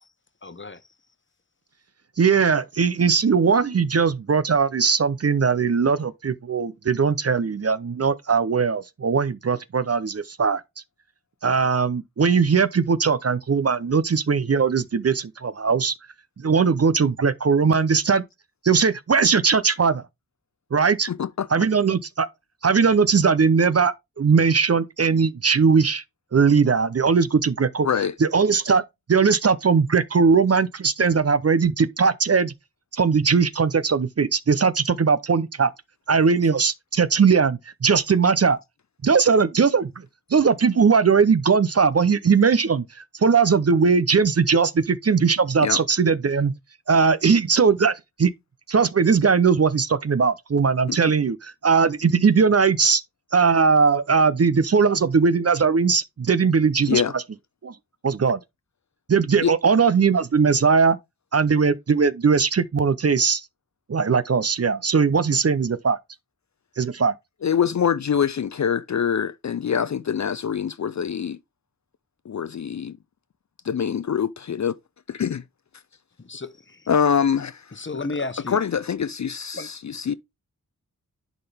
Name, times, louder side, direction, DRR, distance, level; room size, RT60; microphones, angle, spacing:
voice 1, 0.4-0.8 76.2-76.9 77.7-78.6 79.5-79.7, left 3 dB, 35° left, 1.0 m, -33 dB
voice 2, 2.2-10.6 11.4-15.9 16.4-18.2 18.6-20.0 20.7-21.1 21.5-22.3 22.6-26.0 26.3-27.9 28.2-28.8 29.1-32.5 32.9-35.7 36.1-38.6 39.0-40.0 40.3-42.8 43.2-46.5 46.9-47.9 48.2-48.3 48.7-53.0 53.3-57.2 57.6-57.7 58.0-58.4 59.1-61.0 61.3-63.4 63.9-66.0 66.8-67.1, right 5 dB, 45° right, 0.6 m, -19 dB
voice 3, 21.1-21.5 27.8-28.1 45.6-45.8 50.9-51.1 56.9-57.1 59.4-59.5 67.4-71.4 72.3-73.0 73.6-74.8 75.1-75.4 76.9-78.1 78.5-80.1, left 7 dB, 50° left, 0.5 m, -24 dB
11.0 x 3.9 x 3.4 m
wide cardioid pair, 50°, 36 cm